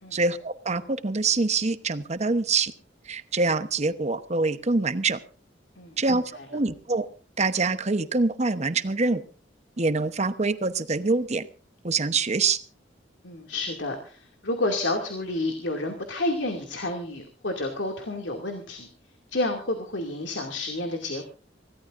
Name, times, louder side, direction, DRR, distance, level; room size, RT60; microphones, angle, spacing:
voice 1, 0.1-2.7 3.1-5.2 6.0-6.2 6.5-7.1 7.4-9.2 9.8-11.5 11.8-12.6, right 3 dB, 40° right, 11 dB, 1.0 m, -25 dB
voice 2, 13.2-18.9 19.3-21.2, left 2 dB, 90° left, 3 dB, 2.5 m, -30 dB
25.5 x 17.0 x 2.6 m, 0.38 s
head